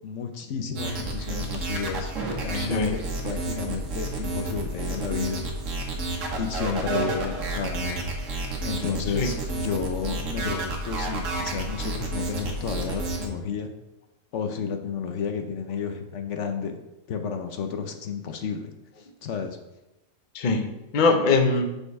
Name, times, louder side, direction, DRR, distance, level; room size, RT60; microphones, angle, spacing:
voice 1, 0.0-2.1 2.4-5.4 6.4-8.0 8.6-13.7 14.3-16.8 17.1-19.6, left 6 dB, 70° left, 6 dB, 0.9 m, -32 dB
sound 1, 0.8-13.3, right 2 dB, 75° right, 1.5 m, -30 dB
voice 2, 2.6-2.9 6.9-7.1 9.1-9.3 20.3-21.7, left 3 dB, 45° left, 5 dB, 0.7 m, -22 dB
6.5 x 5.3 x 4.6 m, 0.97 s
omnidirectional pair, 1.3 m